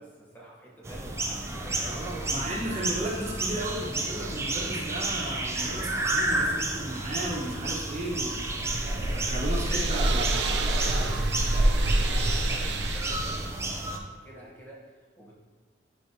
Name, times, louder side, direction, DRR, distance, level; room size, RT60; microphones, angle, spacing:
voice 1, 0.0-2.4 3.0-3.2 9.9-15.3, right 1 dB, 10° left, -5 dB, 1.1 m, -44 dB
sound 1, 0.8-14.0, right 2 dB, 15° right, 0.5 m, -32 dB
voice 2, 1.8-8.4 8.8-10.3, right 1 dB, 35° right, -4 dB, 1.2 m, -34 dB
sound 2, 8.2-13.5, right 1 dB, 70° right, 0.5 m, -27 dB
9.1 x 4.7 x 2.8 m, 1.4 s
head